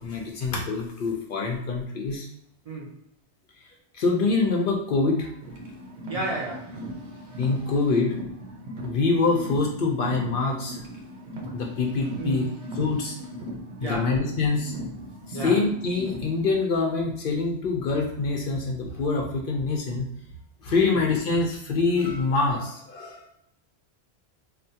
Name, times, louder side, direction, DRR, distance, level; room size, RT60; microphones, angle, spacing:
voice 1, 0.0-2.3 3.9-5.3 7.4-8.2 8.8-10.8 11.5-12.5 12.8-13.2 13.8-14.7 15.3-20.1 20.6-23.3, left 3 dB, 60° left, 1 dB, 0.7 m, -25 dB
voice 2, 2.6-3.0 6.1-6.7 12.2-12.5 13.8-14.1 15.3-15.6 20.8-21.0, right 2 dB, 45° right, -4 dB, 0.6 m, -32 dB
Car, 5.4-16.5, equal, 75° right, 0.9 m, -38 dB
3.3 x 2.1 x 2.7 m, 0.73 s
omnidirectional pair, 1.1 m